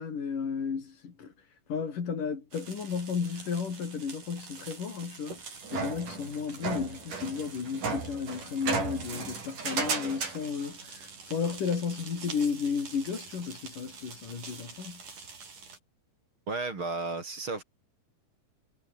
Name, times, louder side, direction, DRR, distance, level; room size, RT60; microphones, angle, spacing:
voice 1, 0.0-1.3 1.7-5.4 5.7-15.0, left 6 dB, 80° left, 5.5 m, -33 dB
sound 1, 2.5-15.8, right 5 dB, 75° right, 7.2 m, -38 dB
voice 2, 16.5-17.6, right 3 dB, 40° right, 4.6 m, -33 dB
omnidirectional pair, 3.7 m